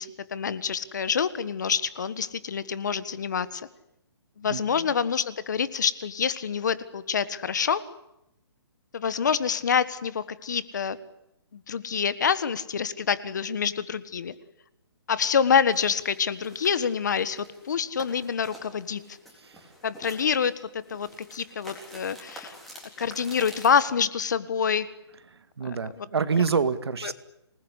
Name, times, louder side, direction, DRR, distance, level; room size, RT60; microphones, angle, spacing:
voice 1, 0.0-3.7 4.4-7.8 8.9-11.0 11.5-14.3 15.1-19.0 19.8-22.5 23.0-24.9 26.0-26.1 27.0-27.1, left 7 dB, 45° left, 15 dB, 1.5 m, -26 dB
sound 1, 15.7-23.8, equal, ahead, 3.9 m, -48 dB
voice 2, 25.3-27.1, right 5 dB, 70° right, 11 dB, 2.1 m, -27 dB
26.5 x 20.0 x 9.9 m, 0.84 s
hypercardioid pair, 175°, 14 cm